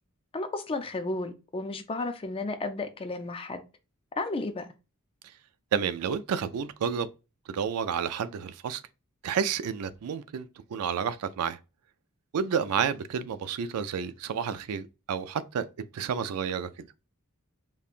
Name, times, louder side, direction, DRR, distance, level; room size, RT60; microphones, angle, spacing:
voice 1, 0.3-3.6 4.2-4.7, left 2 dB, 25° left, 0.4 m, -33 dB
voice 2, 5.7-7.1 7.5-8.8 9.2-11.6 12.3-15.7 15.9-16.9, right 7 dB, 80° right, 0.4 m, -30 dB
5.2 x 2.2 x 2.4 m
head